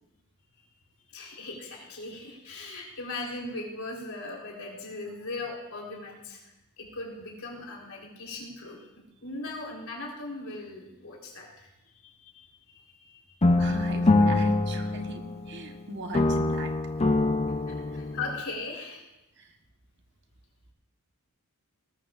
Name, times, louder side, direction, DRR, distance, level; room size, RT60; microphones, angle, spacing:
voice 1, 1.1-8.8 9.2-11.7 12.0-13.3 17.7-19.0, left 2 dB, 70° left, -1 dB, 4.0 m, -39 dB
sound 1, 13.4-15.8 16.1-18.4, left 2 dB, 30° left, 0.6 m, -24 dB
voice 2, 13.6-16.7 19.4-19.5, right 1 dB, 55° right, 4 dB, 1.3 m, -39 dB
19.0 x 13.5 x 2.5 m, 0.96 s
head